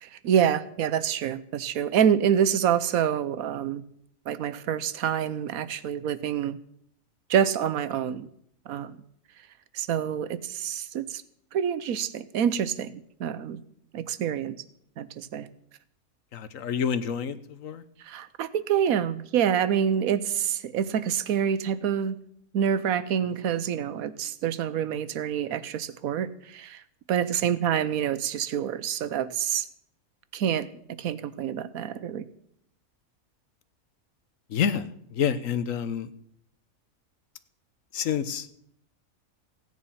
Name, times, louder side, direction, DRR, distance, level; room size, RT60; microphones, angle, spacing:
voice 1, 0.0-3.8 4.3-6.6 7.3-8.3 8.7-9.0 9.7-11.2 11.5-13.6 13.9-14.6 15.0-15.5 18.0-22.2 22.5-26.8 27.1-29.7 30.3-30.7 31.0-32.3, right 8 dB, 90° right, 15 dB, 1.2 m, -27 dB
voice 2, 16.3-17.8 34.5-36.1 37.9-38.5, left 7 dB, 70° left, 13 dB, 1.3 m, -28 dB
16.0 x 9.6 x 5.6 m, 0.69 s
omnidirectional pair, 1.5 m